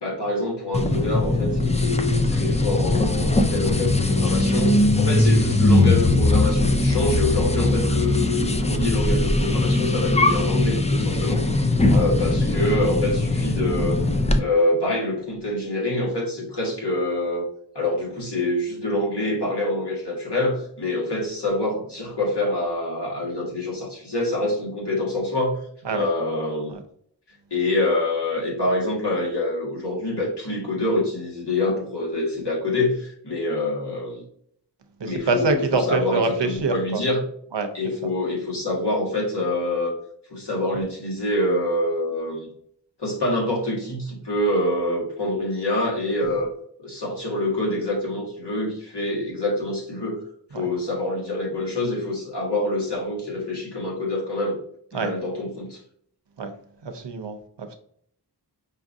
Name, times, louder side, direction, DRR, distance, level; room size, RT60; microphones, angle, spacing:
voice 1, 0.0-11.5 11.9-14.0 14.4-17.5 17.7-25.6 25.9-26.7 27.5-34.2 35.0-37.2 37.7-39.9 40.3-42.5 43.0-46.5 46.8-50.2 50.5-54.6 54.9-55.8, left 1 dB, 75° left, -3 dB, 1.6 m, -26 dB
sound 1, 0.7-14.4, left 2 dB, 15° left, 0.3 m, -20 dB
voice 2, 35.0-37.0 37.5-37.7 50.5-50.7 54.9-55.1 56.4-56.5 56.8-57.7, right 3 dB, 80° right, 6 dB, 0.7 m, -25 dB
5.3 x 2.5 x 2.6 m, 0.64 s
wide cardioid pair, 45°, 41 cm